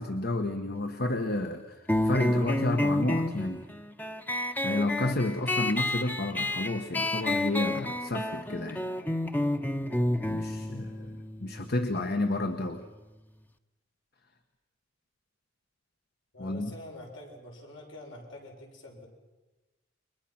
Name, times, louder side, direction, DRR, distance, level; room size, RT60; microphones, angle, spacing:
voice 1, 0.0-3.6 4.6-8.9 10.3-12.8 16.4-16.7, left 2 dB, 55° left, 7 dB, 1.3 m, -31 dB
sound 1, 1.9-13.0, left 1 dB, 10° left, 0.9 m, -30 dB
voice 2, 16.3-19.1, left 1 dB, 75° left, 0 dB, 6.5 m, -46 dB
29.5 x 23.0 x 5.9 m, 1.1 s
head